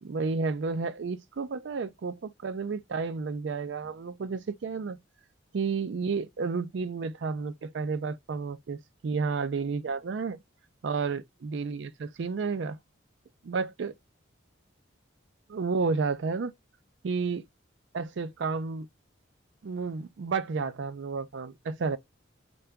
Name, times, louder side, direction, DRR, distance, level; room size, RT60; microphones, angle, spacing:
voice 1, 0.0-5.0 5.5-10.4 10.8-12.8 13.4-13.9 15.5-16.5 17.0-17.5 17.9-18.9 19.6-22.0, right 4 dB, 65° right, 0.4 m, -31 dB
3.8 x 2.2 x 3.4 m
head